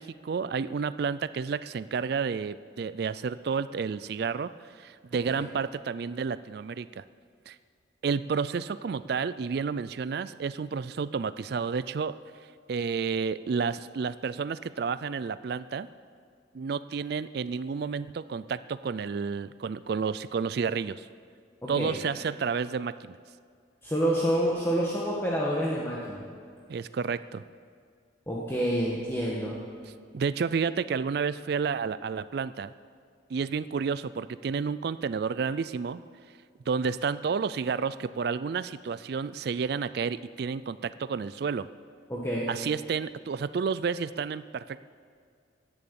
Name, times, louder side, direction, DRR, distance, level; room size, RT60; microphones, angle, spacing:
voice 1, 0.0-7.0 7.5-7.6 8.0-12.1 12.7-15.9 16.5-21.1 21.7-23.1 26.7-27.4 30.1-32.7 33.3-36.0 36.7-41.7 42.5-44.8, right 5 dB, 55° right, 15 dB, 0.3 m, -31 dB
voice 2, 21.6-21.9 23.8-26.2 28.3-29.6 42.1-42.5, equal, 15° left, -5 dB, 1.5 m, -28 dB
17.0 x 10.5 x 7.0 m, 2.2 s
head